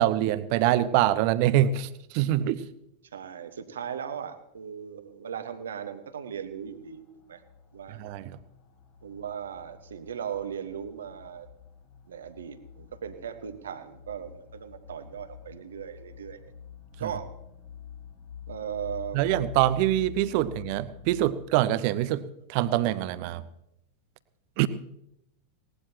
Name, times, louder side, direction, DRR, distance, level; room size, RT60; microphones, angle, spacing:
voice 1, 0.0-2.6 7.9-8.4 17.0-17.1 19.1-23.4 24.6-24.7, right 13 dB, 45° right, 15 dB, 0.8 m, -25 dB
voice 2, 3.1-7.0 7.3-7.4 7.7-8.0 9.0-11.5 12.1-16.4 17.0-17.3 18.5-19.2, right 8 dB, 65° right, 10 dB, 1.3 m, -37 dB
sound 1, 6.3-21.2, left 9 dB, 45° left, 2.1 m, -47 dB
19.5 x 18.5 x 2.9 m, 0.81 s
figure-of-eight pair, 90°, 0 cm